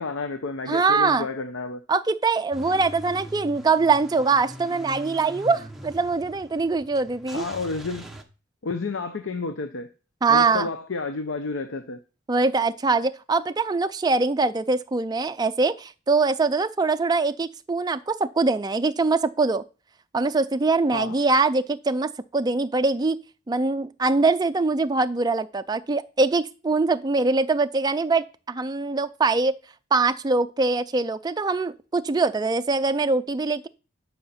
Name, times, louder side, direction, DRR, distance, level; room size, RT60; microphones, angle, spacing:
voice 1, 0.0-1.8 7.3-8.0 8.6-9.9 10.3-12.0 20.9-21.1, left 3 dB, 75° left, 0.7 m, -30 dB
voice 2, 0.7-1.3 1.9-7.4 10.2-10.7 12.3-19.6 20.1-23.2 23.5-29.5 29.9-33.7, right 3 dB, 20° right, 0.4 m, -23 dB
Car / Engine starting / Idling, 2.5-8.2, right 1 dB, ahead, 0.9 m, -41 dB
11.5 x 5.6 x 4.2 m
head